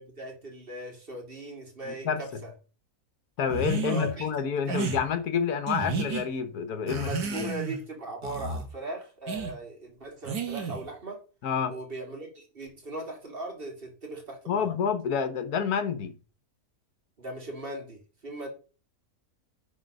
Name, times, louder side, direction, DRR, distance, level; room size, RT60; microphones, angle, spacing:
voice 1, 0.0-2.5 3.8-4.3 4.7-4.8 6.9-11.2 11.7-14.7 17.2-18.5, right 2 dB, 35° right, 2.1 m, -38 dB
voice 2, 1.9-2.4 3.4-7.5 11.4-11.7 14.5-16.1, left 7 dB, 75° left, 1.4 m, -29 dB
sound 1, 3.5-4.1 4.7-5.0 5.7-6.2 6.9-7.8 8.2-8.7 9.3-9.5 10.2-10.9, right 4 dB, 80° right, 1.9 m, -32 dB
10.5 x 4.0 x 5.2 m
omnidirectional pair, 1.6 m